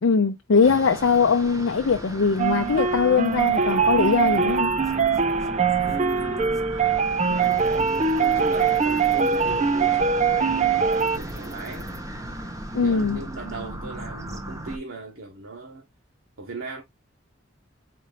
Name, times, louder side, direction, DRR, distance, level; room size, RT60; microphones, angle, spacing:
voice 1, 0.0-4.7 12.7-13.2, left 5 dB, 70° left, 0.5 m, -21 dB
sound 1, 0.6-14.8, right 1 dB, 15° right, 0.9 m, -36 dB
sound 2, 2.4-11.2, right 5 dB, 35° right, 0.5 m, -22 dB
voice 2, 5.8-6.7 7.3-10.5 11.0-11.9 12.7-15.8 16.4-16.8, right 3 dB, 85° right, 1.2 m, -37 dB
4.2 x 2.6 x 4.8 m
head